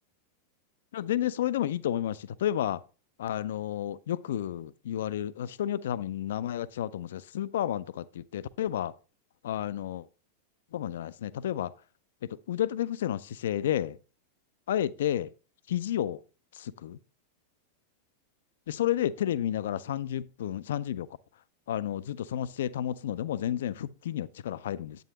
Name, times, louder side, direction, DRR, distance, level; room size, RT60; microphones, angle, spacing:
voice 1, 0.9-2.8 3.2-8.9 9.4-10.0 10.7-11.7 12.5-14.0 14.7-15.3 15.7-16.2 16.6-17.0 18.7-21.1 21.7-25.0, left 11 dB, 60° left, 0.4 m, -31 dB
9.2 x 8.7 x 2.8 m
figure-of-eight pair, 90°, 0 cm